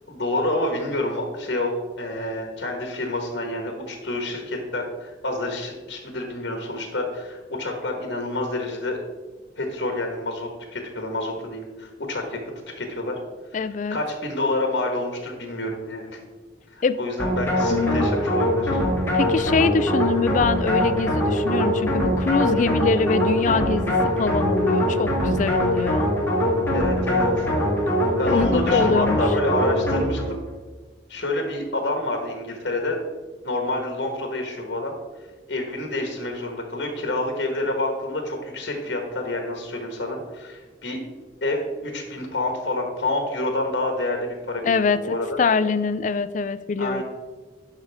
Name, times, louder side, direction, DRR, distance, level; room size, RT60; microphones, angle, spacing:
voice 1, 0.1-1.7 2.0-9.0 9.6-12.4 12.8-13.2 13.9-16.2 16.7-18.8 26.7-27.5 28.2-30.4 31.1-33.0 33.4-34.9 35.5-41.0 41.4-45.4 46.8-47.0, left 2 dB, 65° left, 3 dB, 1.3 m, -28 dB
voice 2, 13.5-14.0 16.8-17.0 17.7-18.1 19.1-26.1 28.2-29.2 44.6-47.0, left 4 dB, 40° left, 14 dB, 0.3 m, -23 dB
sound 1, 17.2-30.4, equal, 10° left, 1.8 m, -22 dB
11.5 x 5.6 x 3.4 m, 1.3 s
head